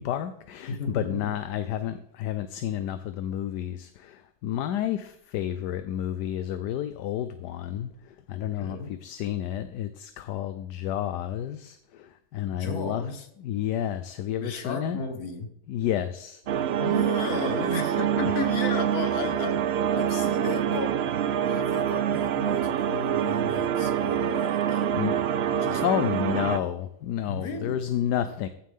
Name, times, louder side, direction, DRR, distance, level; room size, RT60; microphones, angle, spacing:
voice 1, 0.0-13.1 13.4-15.0 15.7-16.6 18.2-18.3 24.9-25.2 25.8-28.5, left 10 dB, 75° left, 11 dB, 1.2 m, -30 dB
voice 2, 0.7-1.3 8.4-8.9 12.5-13.3 14.4-15.5 16.8-25.2 25.6-25.8 27.3-27.8, left 3 dB, 60° left, 7 dB, 1.8 m, -34 dB
sound 1, 16.5-26.6, right 9 dB, 75° right, 0.6 m, -26 dB
14.5 x 7.7 x 3.6 m, 0.74 s
omnidirectional pair, 1.8 m